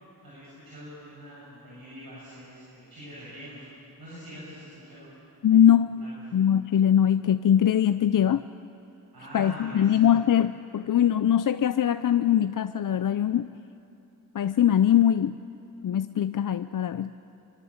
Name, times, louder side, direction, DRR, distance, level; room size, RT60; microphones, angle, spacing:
voice 1, 0.2-3.6 4.0-5.1 6.0-6.1 9.1-10.1, equal, 90° right, -8 dB, 7.2 m, -44 dB
voice 2, 5.4-5.9 6.3-8.4 9.3-13.5 14.3-15.4 15.8-17.1, left 10 dB, 60° left, 11 dB, 0.6 m, -22 dB
25.0 x 24.5 x 7.3 m, 2.8 s
cardioid pair, 55°, 36 cm